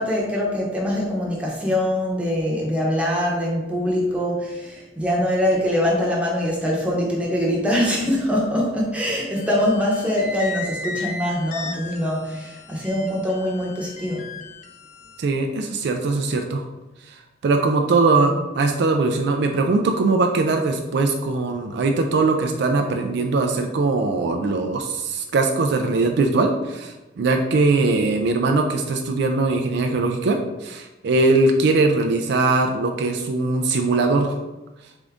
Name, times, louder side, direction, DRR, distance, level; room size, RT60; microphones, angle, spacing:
voice 1, 0.0-14.3, left 1 dB, 5° right, -4 dB, 0.8 m, -23 dB
sound 1, 9.4-15.2, left 2 dB, 35° left, 0.4 m, -36 dB
voice 2, 15.2-16.6 17.4-34.4, right 3 dB, 60° right, 4 dB, 0.4 m, -21 dB
3.8 x 3.6 x 3.5 m, 1.0 s
head